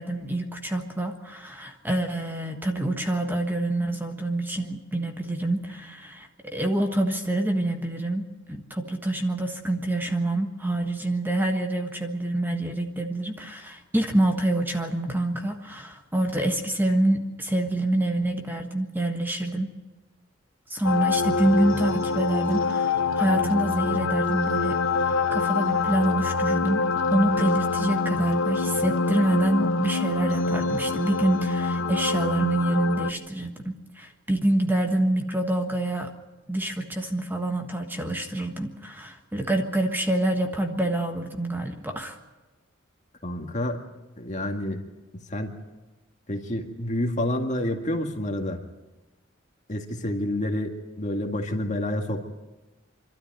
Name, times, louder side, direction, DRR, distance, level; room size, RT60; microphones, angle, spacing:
voice 1, 0.0-19.7 20.7-24.8 25.3-26.8 27.1-36.1 36.5-42.2, right 1 dB, 10° right, 4 dB, 1.5 m, -26 dB
sound 1, 20.8-33.1, left 4 dB, 90° left, 1.0 m, -25 dB
voice 2, 43.2-43.8 44.2-44.8 45.3-45.5 46.3-48.6 49.7-52.3, left 1 dB, 35° left, 4 dB, 2.0 m, -28 dB
26.5 x 13.0 x 9.3 m, 1.1 s
head